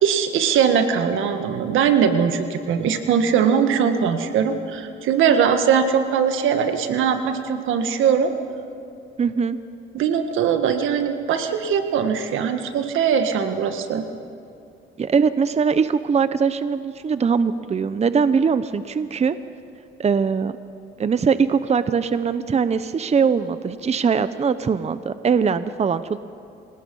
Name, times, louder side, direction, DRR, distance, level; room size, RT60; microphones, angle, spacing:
voice 1, 0.0-8.3 9.9-14.1, right 7 dB, 85° right, 7 dB, 1.7 m, -20 dB
voice 2, 9.2-9.6 15.0-19.4 20.0-20.6 21.0-26.2, right 6 dB, 35° right, 13 dB, 0.7 m, -21 dB
28.0 x 19.0 x 5.5 m, 2.7 s
cardioid pair, 90°, 20 cm